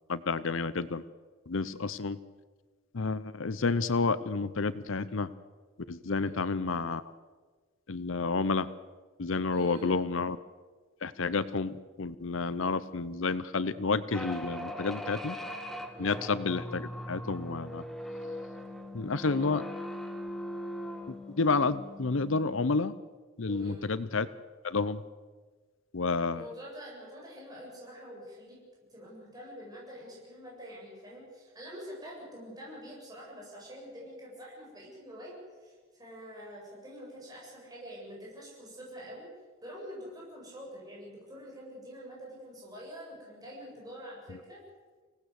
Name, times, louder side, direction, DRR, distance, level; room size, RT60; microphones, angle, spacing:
voice 1, 0.1-1.0 1.5-2.2 2.9-5.3 5.9-7.0 7.9-8.7 9.2-10.4 11.0-15.4 16.0-17.8 18.9-19.7 21.1-22.9 23.4-24.3 24.6-25.0 25.9-26.4, left 4 dB, 65° left, 16 dB, 0.7 m, -30 dB
voice 2, 6.2-6.5 9.5-10.0 15.9-16.2 23.5-23.9 26.3-28.6 28.9-39.3 39.6-44.6, equal, 20° right, -4 dB, 7.9 m, -46 dB
sound 1, 14.1-22.9, equal, ahead, 1.4 m, -40 dB
25.5 x 18.0 x 8.1 m, 1.4 s
head